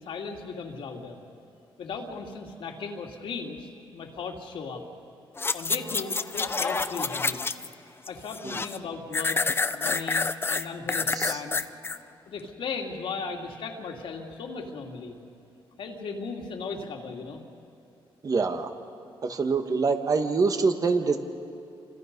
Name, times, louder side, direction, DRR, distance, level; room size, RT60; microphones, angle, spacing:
voice 1, 0.0-1.2 1.8-4.8 5.5-7.4 8.1-9.4 9.7-11.7 12.3-15.1 15.8-17.4, left 4 dB, 65° left, 1 dB, 2.7 m, -36 dB
sound 1, 5.4-7.7 8.1-8.8 9.1-12.0 12.4-12.5, left 4 dB, 25° left, 0.7 m, -28 dB
voice 2, 18.2-18.7 19.2-21.2, right 4 dB, 40° right, 6 dB, 1.7 m, -25 dB
29.0 x 26.0 x 5.4 m, 2.5 s
cardioid pair, 110°, 9 cm